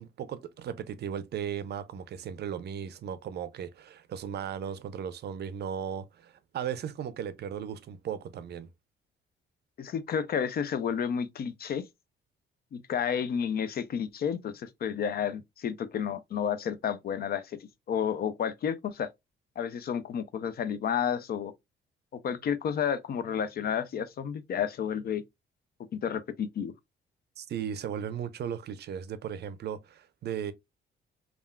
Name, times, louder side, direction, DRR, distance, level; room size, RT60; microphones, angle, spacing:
voice 1, 0.0-8.7 27.4-30.5, right 8 dB, 55° right, 0.5 m, -36 dB
voice 2, 9.8-11.8 12.7-17.6 17.9-19.1 19.6-21.5 22.1-25.2 25.9-26.7, left 8 dB, 50° left, 0.5 m, -31 dB
3.4 x 2.4 x 2.2 m
cardioid pair, 90°, 20 cm